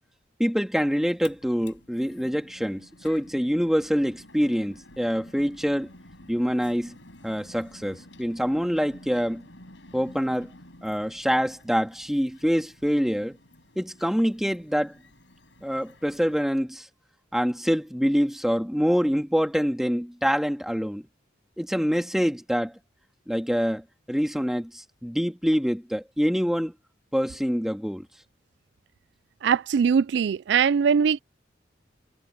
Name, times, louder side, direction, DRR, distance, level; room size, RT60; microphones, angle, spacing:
voice 1, 0.4-5.9 6.3-7.0 7.2-9.4 9.9-10.5 10.8-13.4 13.8-14.9 15.6-16.9 17.3-21.0 21.6-22.7 23.3-26.7 27.1-28.1, equal, ahead, 2.3 m, -25 dB
sound 1, 0.8-16.4, left 1 dB, 75° left, 7.4 m, -51 dB
voice 2, 29.4-31.2, right 6 dB, 65° right, 0.3 m, -21 dB
head